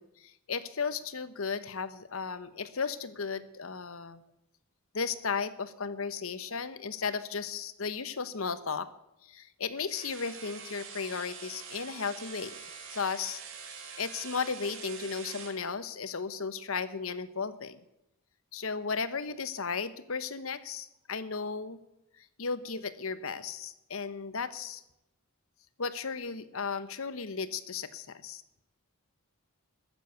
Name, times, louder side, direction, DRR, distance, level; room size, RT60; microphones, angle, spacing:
voice 1, 0.0-4.2 4.9-8.9 9.2-12.5 12.9-13.4 14.0-17.8 18.5-21.8 22.4-24.8 25.8-28.4, left 5 dB, 70° left, 14 dB, 1.0 m, -35 dB
sound 1, 9.9-15.6, right 6 dB, 65° right, 2.6 m, -45 dB
13.5 x 11.0 x 8.1 m, 0.88 s
head